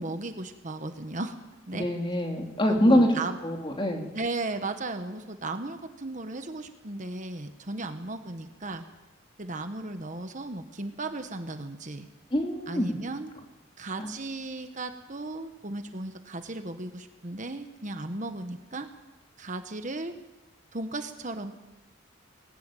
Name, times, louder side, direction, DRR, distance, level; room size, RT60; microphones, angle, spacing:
voice 1, 0.0-1.4 1.7-1.9 2.7-3.4 4.1-8.8 9.4-12.1 12.7-13.3 13.8-18.9 19.4-20.1 20.7-21.6, right 2 dB, 40° right, 8 dB, 1.2 m, -35 dB
voice 2, 1.7-3.1 3.4-4.1 12.3-13.0 14.0-14.1, equal, 25° left, 2 dB, 2.9 m, -24 dB
20.0 x 17.5 x 9.2 m, 1.1 s
head